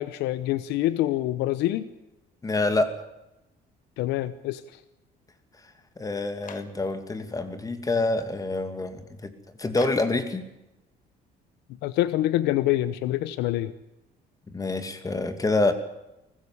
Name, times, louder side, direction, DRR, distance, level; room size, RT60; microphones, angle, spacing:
voice 1, 0.0-1.8 4.0-4.6 11.8-13.7, left 14 dB, 90° left, 15 dB, 1.0 m, -26 dB
voice 2, 2.4-2.9 6.0-9.3 9.6-10.4 14.5-15.7, left 2 dB, 20° left, 9 dB, 2.6 m, -26 dB
Clapping, 6.4-6.8 9.8-10.2, left 7 dB, 50° left, 2.2 m, -44 dB
20.0 x 15.5 x 9.9 m, 0.91 s
cardioid pair, 110°, 17 cm